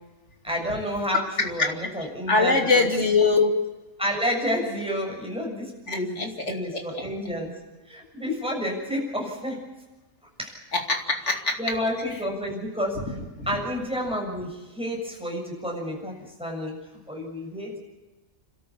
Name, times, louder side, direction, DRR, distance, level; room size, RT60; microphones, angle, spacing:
voice 1, 0.4-2.9 4.0-7.5 7.9-9.6 10.4-10.6 11.6-13.0 13.5-16.1 16.4-16.7 17.1-17.8, equal, 5° right, -1 dB, 7.1 m, -30 dB
voice 2, 1.4-1.7 2.0-3.6 5.9-7.0 10.7-11.6 13.4-13.5, left 3 dB, 55° left, 3 dB, 2.9 m, -23 dB
29.5 x 13.0 x 8.5 m, 1.1 s
omnidirectional pair, 1.4 m